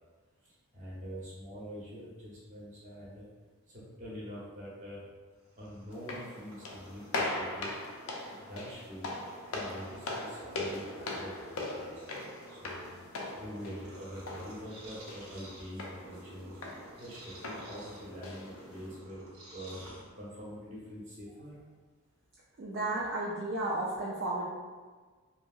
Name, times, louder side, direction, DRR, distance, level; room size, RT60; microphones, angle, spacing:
voice 1, 0.7-3.3 3.7-5.0 5.6-7.8 8.3-9.1 9.5-12.1 12.5-13.0 13.3-16.6 17.0-19.2 19.5-19.8 20.1-21.5, equal, 35° right, -7 dB, 0.8 m, -45 dB
Purr, 5.4-20.5, right 1 dB, 80° right, 0.8 m, -53 dB
sound 1, 5.9-18.9, left 2 dB, 70° left, 0.4 m, -40 dB
voice 2, 22.6-24.4, right 2 dB, 50° right, -6 dB, 0.4 m, -33 dB
2.9 x 2.6 x 2.3 m, 1.4 s
head